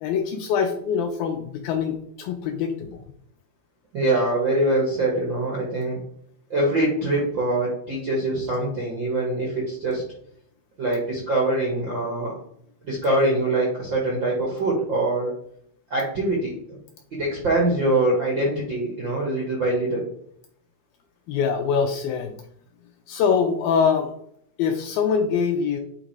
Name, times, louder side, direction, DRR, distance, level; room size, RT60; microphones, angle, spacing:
voice 1, 0.0-3.0 21.3-22.4 23.1-24.1 24.6-25.8, left 6 dB, 80° left, 4 dB, 2.2 m, -24 dB
voice 2, 3.9-6.0 6.5-10.0 10.8-12.4 12.8-15.3 15.9-16.8 17.2-20.0, right 2 dB, 60° right, -3 dB, 1.2 m, -23 dB
8.9 x 3.8 x 4.6 m, 0.69 s
omnidirectional pair, 4.7 m